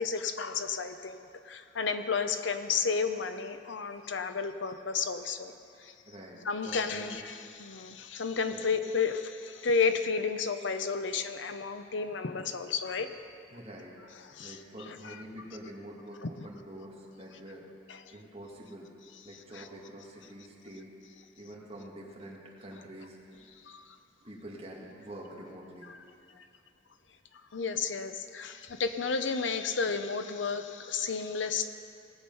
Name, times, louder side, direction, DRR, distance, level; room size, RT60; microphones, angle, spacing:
voice 1, 0.0-5.5 5.8-5.9 6.4-13.1 14.3-14.6 15.0-15.2 16.2-16.3 17.9-18.0 19.5-19.6 23.6-24.0 26.4-26.5 27.5-31.7, left 5 dB, 75° left, 9 dB, 0.7 m, -32 dB
voice 2, 6.0-7.1 8.5-8.7 13.5-14.0 14.4-17.7 18.1-18.9 19.2-20.9 21.4-23.4 24.2-25.9, right 1 dB, 30° right, -3 dB, 1.9 m, -46 dB
19.0 x 7.2 x 5.5 m, 2.6 s
head